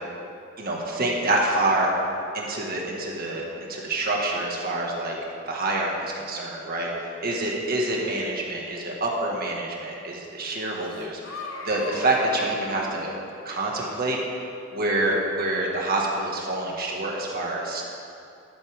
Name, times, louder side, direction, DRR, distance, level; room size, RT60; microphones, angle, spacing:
voice 1, 0.6-1.9 2.3-5.2 5.5-13.2 13.5-14.2 14.7-17.8, right 2 dB, 50° right, -2 dB, 1.9 m, -27 dB
sound 1, 10.8-13.0, left 3 dB, 70° left, 1.4 m, -38 dB
14.0 x 12.5 x 3.7 m, 2.5 s
head